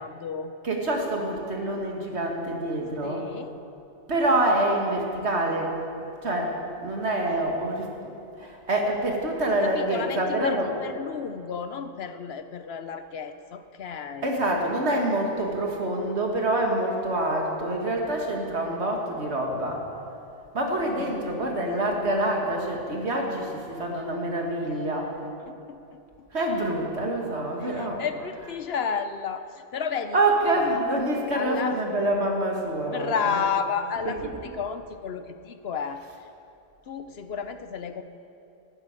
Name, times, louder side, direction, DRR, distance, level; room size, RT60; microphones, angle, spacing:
voice 1, 0.0-0.5 3.0-3.6 9.4-14.3 21.0-21.4 25.4-26.3 27.6-30.2 30.5-30.8 31.3-31.8 32.9-36.3 36.9-38.0, left 6 dB, 65° left, 10 dB, 0.9 m, -32 dB
voice 2, 0.6-3.3 4.1-5.8 6.2-8.1 8.4-10.7 14.2-19.9 20.5-25.1 26.3-28.0 30.1-33.4, right 1 dB, 70° right, 1 dB, 2.3 m, -26 dB
12.5 x 12.0 x 8.8 m, 2.7 s
omnidirectional pair, 1.2 m